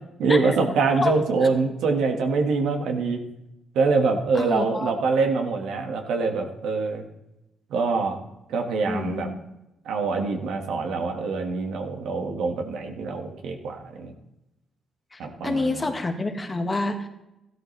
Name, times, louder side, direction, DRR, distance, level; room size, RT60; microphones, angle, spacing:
voice 1, 0.2-3.2 3.7-7.0 7.7-8.2 8.5-9.3 9.9-14.1 15.2-15.9, right 4 dB, 80° right, 3 dB, 1.8 m, -24 dB
voice 2, 4.3-4.9 8.9-9.2 11.0-11.1 15.1-17.1, left 2 dB, 25° left, 5 dB, 1.6 m, -27 dB
14.5 x 12.5 x 3.4 m, 0.91 s
cardioid pair, 90°, 0 cm